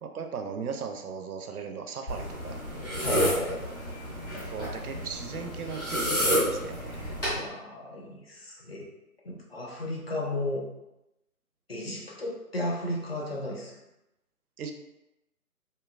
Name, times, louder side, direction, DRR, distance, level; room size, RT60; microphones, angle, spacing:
voice 1, 0.0-2.6 4.4-7.2 14.6-14.7, right 6 dB, 80° right, 5 dB, 0.5 m, -38 dB
sound 1, 2.1-7.4, equal, 15° left, 0.8 m, -30 dB
voice 2, 3.0-3.6 7.4-8.9 9.2-10.6 11.7-13.7, left 1 dB, 45° left, -2 dB, 0.4 m, -34 dB
2.7 x 2.3 x 2.3 m, 0.93 s
figure-of-eight pair, 150°, 44 cm